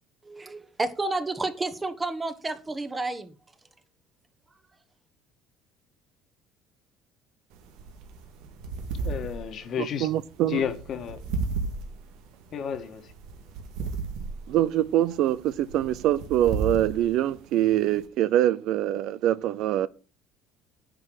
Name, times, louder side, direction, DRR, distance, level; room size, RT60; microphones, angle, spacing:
voice 1, 0.2-3.3, right 2 dB, 15° right, 1.2 m, -30 dB
sound 1, 7.5-18.1, right 4 dB, 85° right, 2.0 m, -35 dB
voice 2, 9.0-10.1 10.5-11.2 12.5-13.1, left 7 dB, 45° left, 1.5 m, -31 dB
voice 3, 9.8-10.6 14.5-19.9, right 12 dB, 65° right, 0.6 m, -24 dB
10.5 x 4.6 x 7.8 m
cardioid pair, 130°, 0 cm